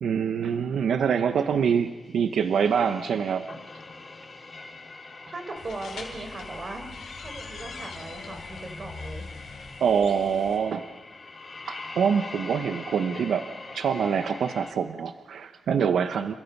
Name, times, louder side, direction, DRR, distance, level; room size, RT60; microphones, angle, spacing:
voice 1, 0.0-3.4 9.8-10.9 11.7-13.5 13.7-16.3, right 7 dB, 85° right, 8 dB, 0.9 m, -25 dB
sound 1, 1.6-14.7, left 3 dB, 35° left, 2.6 m, -43 dB
voice 2, 5.3-6.9 7.2-9.2, right 2 dB, 40° right, 5 dB, 4.4 m, -38 dB
sound 2, 5.6-10.6, left 4 dB, 85° left, 5.2 m, -43 dB
30.0 x 27.0 x 5.4 m, 1.4 s
wide cardioid pair, 135°, 0 cm